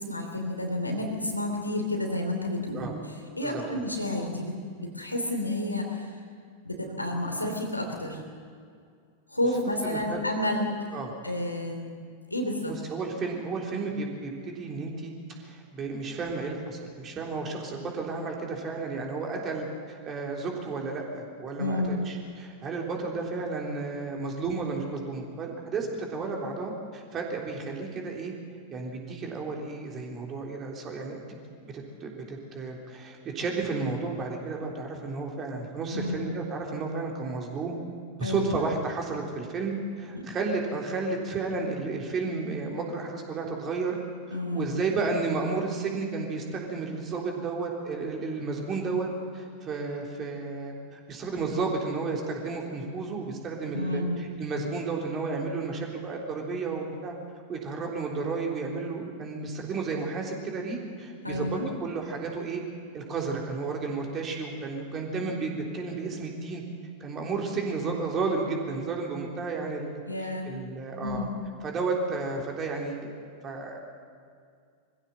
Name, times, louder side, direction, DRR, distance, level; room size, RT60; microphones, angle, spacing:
voice 1, 0.0-2.9 3.4-4.5 4.8-6.1 6.6-8.2 9.3-10.7 11.2-11.9 12.3-12.7 21.6-22.0 35.9-36.2 38.2-38.5 40.1-40.2 44.3-44.7 53.7-54.2 61.2-61.7 70.1-70.5 71.0-71.3, left 1 dB, 85° left, 2 dB, 3.0 m, -30 dB
voice 2, 3.4-3.8 9.8-10.2 10.9-11.1 12.9-28.3 28.7-31.4 31.6-37.8 38.2-44.0 44.3-49.1 49.3-57.1 57.5-62.6 62.9-66.6 67.0-71.3 71.6-73.8, right 4 dB, 25° right, 0 dB, 3.6 m, -32 dB
23.0 x 15.5 x 7.5 m, 2.2 s
figure-of-eight pair, 90°, 0 cm